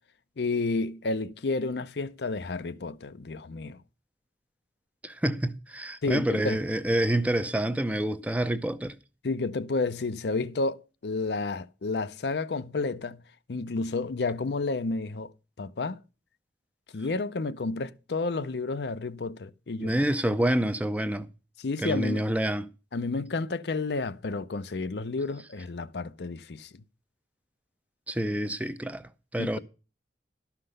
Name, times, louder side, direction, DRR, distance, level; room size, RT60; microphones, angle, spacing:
voice 1, 0.4-3.8 6.0-6.6 9.2-13.2 13.5-15.3 15.6-16.0 16.9-19.9 20.3-20.4 21.6-22.2 22.9-26.7 29.4-29.6, left 3 dB, 70° left, 0.6 m, -31 dB
voice 2, 5.0-9.0 19.8-21.3 21.8-22.7 28.1-29.6, right 1 dB, 10° right, 0.5 m, -27 dB
12.0 x 5.8 x 6.5 m
head